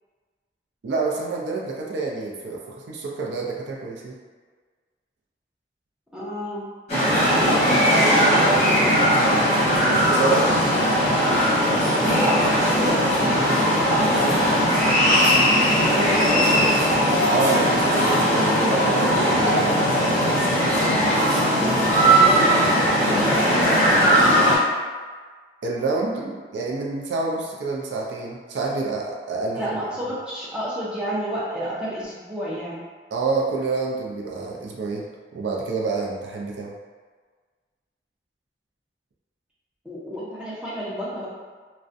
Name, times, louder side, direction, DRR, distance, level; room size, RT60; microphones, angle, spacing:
voice 1, 0.8-4.2 9.8-10.6 12.1-12.2 12.8-14.4 17.3-20.4 25.6-29.7 33.1-36.7, right 3 dB, 85° right, -2 dB, 0.4 m, -28 dB
voice 2, 6.1-6.7 7.3-9.7 12.0-13.0 15.8-16.7 22.0-22.6 23.0-24.0 29.5-32.8 39.8-41.3, equal, 5° right, -8 dB, 0.4 m, -30 dB
sound 1, 6.9-24.6, equal, 40° left, 0.8 m, -19 dB
2.4 x 2.1 x 2.5 m, 1.5 s
head